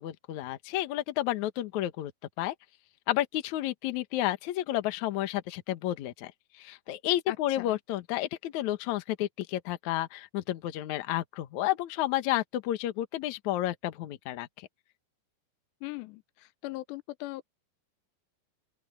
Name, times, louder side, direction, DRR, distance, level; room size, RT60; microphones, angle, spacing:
voice 1, 0.0-2.1 2.4-2.5 3.1-6.3 6.6-14.5, left 14 dB, 65° left, 2.0 m, -31 dB
voice 2, 7.3-7.8 15.8-17.4, left 20 dB, 90° left, 2.8 m, -40 dB
open air
omnidirectional pair, 4.9 m